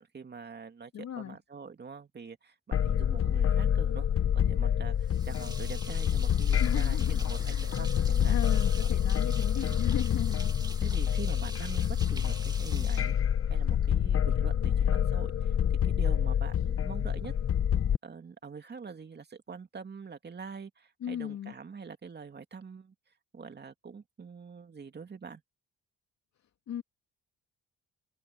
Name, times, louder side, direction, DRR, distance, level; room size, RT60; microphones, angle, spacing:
voice 1, 0.0-4.1 4.3-8.9 9.5-9.9 10.8-13.1 13.5-15.6 15.8-17.3 18.0-22.9 23.3-25.4, right 5 dB, 35° right, 2.5 m, -45 dB
voice 2, 0.9-1.4 3.1-3.2 6.6-7.9 8.3-10.9 11.8-12.0 21.0-21.5 26.7-26.8, left 9 dB, 65° left, 2.6 m, -38 dB
sound 1, 2.7-18.0, left 9 dB, 50° left, 1.0 m, -27 dB
sound 2, 5.0-13.8, right 2 dB, 15° right, 2.7 m, -46 dB
cardioid pair, 90°, 30 cm